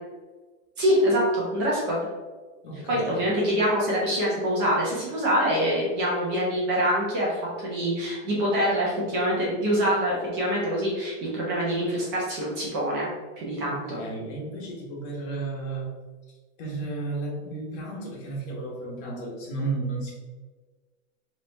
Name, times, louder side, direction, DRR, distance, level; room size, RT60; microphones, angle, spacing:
voice 1, 0.8-2.0 2.9-13.1 13.4-14.0, equal, 30° right, -5 dB, 1.1 m, -25 dB
voice 2, 2.6-3.2 13.5-15.9 16.6-20.2, right 3 dB, 45° left, -3 dB, 1.3 m, -33 dB
3.7 x 3.2 x 3.3 m, 1.3 s
supercardioid pair, 170°, 36 cm